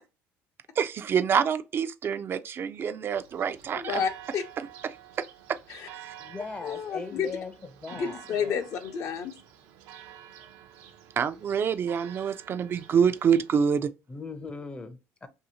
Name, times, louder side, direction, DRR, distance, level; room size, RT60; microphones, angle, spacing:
voice 1, 0.8-4.0 6.0-6.1 11.2-13.9, right 7 dB, 40° right, 0.3 m, -26 dB
Church bell, 3.1-13.8, right 10 dB, 90° right, 0.6 m, -49 dB
voice 2, 3.7-4.4 5.7-5.9 6.6-7.3 7.9-9.4, left 7 dB, 65° left, 0.7 m, -30 dB
voice 3, 6.2-7.5 7.8-8.6 14.1-15.3, left 3 dB, 20° left, 0.5 m, -39 dB
2.7 x 2.7 x 2.7 m
cardioid pair, 100°, 6 cm